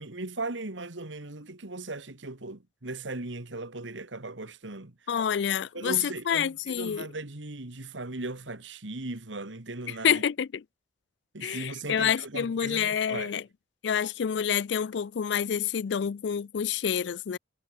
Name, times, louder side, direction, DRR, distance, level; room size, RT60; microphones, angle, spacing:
voice 1, 0.0-5.0 5.7-10.2 11.3-13.3, right 2 dB, 75° right, 2.0 m, -38 dB
voice 2, 5.1-7.1 9.9-10.6 11.4-13.4 13.8-17.4, left 8 dB, 65° left, 0.4 m, -28 dB
head